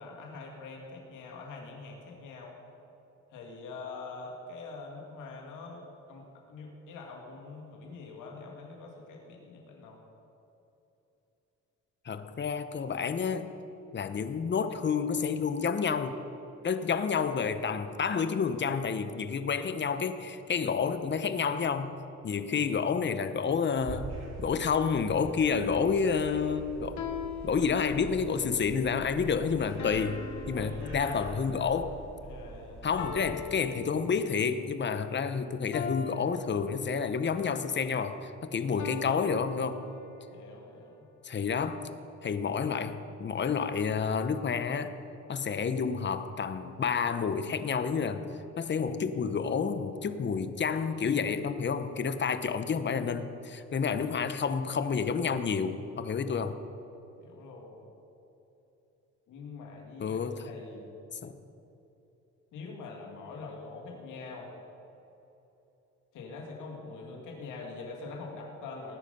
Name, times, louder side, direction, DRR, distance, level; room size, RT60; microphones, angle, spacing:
voice 1, 0.0-2.6 3.3-10.0 30.4-31.5 32.2-33.0 40.3-41.1 57.2-57.9 59.3-60.9 62.5-64.5 66.1-69.0, left 3 dB, 90° left, 0 dB, 2.5 m, -44 dB
voice 2, 12.0-13.5 13.9-16.2 16.6-21.9 22.2-24.1 24.4-27.0 27.4-32.0 32.8-39.8 41.2-41.9 42.2-44.9 45.3-48.2 48.6-56.6 60.0-60.5 61.2-61.4, left 6 dB, 35° left, 10 dB, 1.0 m, -29 dB
sound 1, 23.7-33.4, right 2 dB, 60° right, 3.7 m, -45 dB
sound 2, 25.0-25.4 27.0-28.4 29.8-31.6 33.0-34.6 35.7-37.4 38.8-40.4, left 6 dB, 70° left, 1.3 m, -42 dB
18.5 x 9.8 x 5.5 m, 3.0 s
cardioid pair, 90°, 30 cm